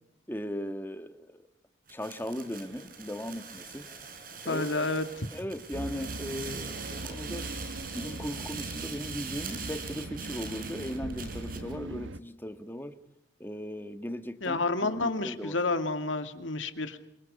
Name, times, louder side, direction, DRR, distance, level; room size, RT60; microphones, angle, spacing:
voice 1, 0.3-1.5 1.9-3.9 4.4-4.9 5.3-7.5 7.9-13.0 13.4-15.6, equal, 10° left, 8 dB, 1.6 m, -38 dB
sound 1, 1.9-11.7, right 6 dB, 45° right, 4.7 m, -43 dB
voice 2, 4.5-5.3 14.4-17.0, left 3 dB, 90° left, 8 dB, 2.3 m, -30 dB
sound 2, 5.7-12.2, right 1 dB, 85° right, 1.2 m, -40 dB
28.0 x 24.5 x 5.4 m, 0.81 s
head